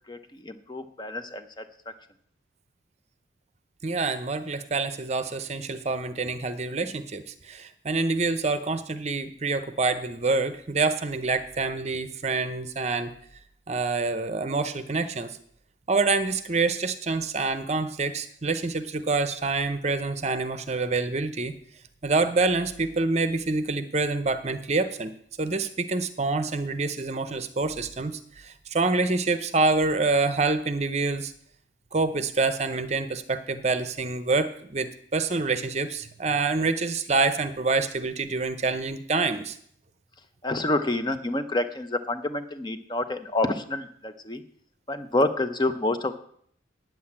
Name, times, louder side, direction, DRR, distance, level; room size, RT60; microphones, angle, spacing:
voice 1, 0.1-1.9 40.4-44.4 44.9-46.2, left 2 dB, 20° left, 8 dB, 0.7 m, -28 dB
voice 2, 3.8-13.1 13.7-15.3 15.9-21.5 22.0-25.1 25.4-31.3 31.9-39.6, right 3 dB, 35° right, 11 dB, 0.7 m, -26 dB
9.3 x 7.8 x 8.6 m, 0.65 s
head